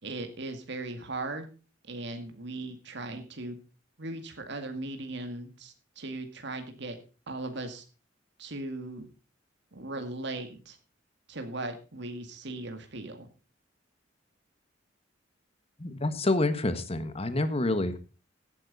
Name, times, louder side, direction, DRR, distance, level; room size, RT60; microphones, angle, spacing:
voice 1, 0.0-1.5 1.8-3.6 4.0-7.0 7.3-7.8 8.4-9.1 9.7-10.8 11.3-13.3, right 2 dB, 65° right, 6 dB, 2.1 m, -38 dB
voice 2, 15.8-18.0, left 2 dB, 30° left, 11 dB, 1.4 m, -28 dB
16.0 x 9.2 x 4.1 m, 0.34 s
head